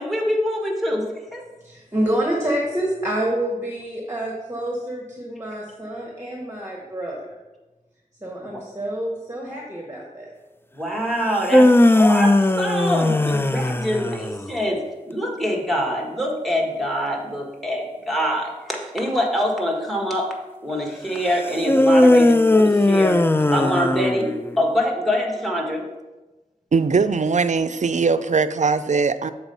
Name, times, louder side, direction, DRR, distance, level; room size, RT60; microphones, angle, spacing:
voice 1, 0.0-1.4 8.4-8.5 10.7-14.8 15.1-20.3 20.6-23.2 23.5-25.8, equal, ahead, 0 dB, 1.6 m, -24 dB
voice 2, 1.6-7.2 8.2-10.3, right 1 dB, 15° right, -2 dB, 1.3 m, -27 dB
sound 1, 11.3-14.5 21.6-24.6, left 1 dB, 15° left, 0.3 m, -17 dB
voice 3, 26.7-29.3, right 4 dB, 60° right, 12 dB, 0.4 m, -20 dB
7.0 x 4.3 x 5.4 m, 1.1 s
wide cardioid pair, 45°, 14 cm